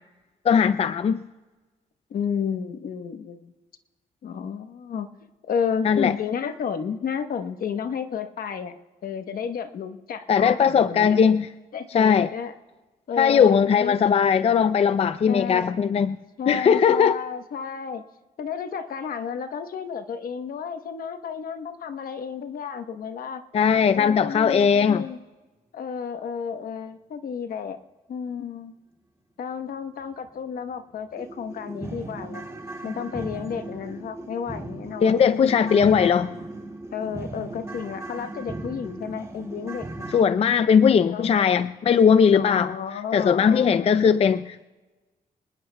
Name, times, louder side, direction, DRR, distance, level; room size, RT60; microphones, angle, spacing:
voice 1, 0.4-1.2 5.8-6.1 10.3-11.5 11.9-12.3 13.2-16.2 16.5-17.2 23.5-25.0 35.0-36.3 40.1-42.7 43.1-44.6, left 7 dB, 40° left, 12 dB, 0.4 m, -19 dB
voice 2, 2.1-3.5 4.2-5.1 5.4-11.2 11.7-12.5 13.1-14.0 15.3-15.7 16.4-18.0 18.4-23.4 24.0-25.2 25.7-27.8 28.1-28.7 29.4-32.5 32.8-35.2 36.9-40.1 41.1-41.6 42.3-43.9, left 7 dB, 75° left, 8 dB, 1.0 m, -32 dB
sound 1, 30.2-30.3 30.7-30.8 31.2-40.2, right 2 dB, 20° right, 1.9 m, -37 dB
26.0 x 20.0 x 2.2 m, 1.2 s
cardioid pair, 105°, 15 cm